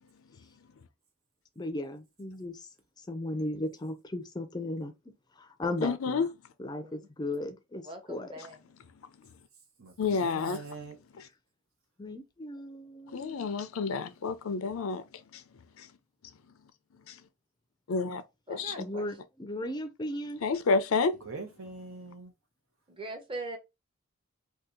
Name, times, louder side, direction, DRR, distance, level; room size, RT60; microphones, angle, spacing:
voice 1, 1.6-2.7 3.0-4.9 5.4-6.2 6.6-8.4 12.0-13.5 18.8-20.4, left 1 dB, 20° left, 0.4 m, -36 dB
voice 2, 5.8-6.3 10.0-10.6 11.1-11.3 13.1-15.4 15.8-15.9 17.1-17.2 17.9-18.2 18.5-18.7 20.4-21.1, left 4 dB, 80° left, 0.5 m, -29 dB
voice 3, 7.9-8.6 18.5-19.0 22.9-23.6, right 2 dB, 25° right, 0.7 m, -41 dB
voice 4, 9.8-10.9 21.2-22.3, right 3 dB, 90° right, 0.9 m, -43 dB
2.8 x 2.3 x 3.6 m
head